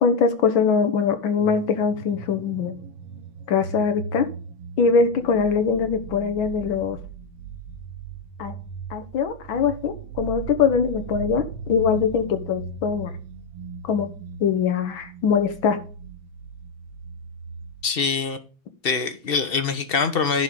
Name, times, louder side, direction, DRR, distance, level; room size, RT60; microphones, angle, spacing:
voice 1, 0.0-2.7 3.5-4.3 4.8-7.0 8.4-8.6 8.9-13.1 13.8-14.1 14.4-15.8, left 6 dB, 75° left, 1.9 m, -22 dB
sound 1, 1.4-17.9, right 5 dB, 65° right, 1.5 m, -38 dB
voice 2, 17.8-18.4 18.8-20.4, left 5 dB, 45° left, 0.7 m, -23 dB
10.5 x 3.8 x 7.1 m
omnidirectional pair, 2.2 m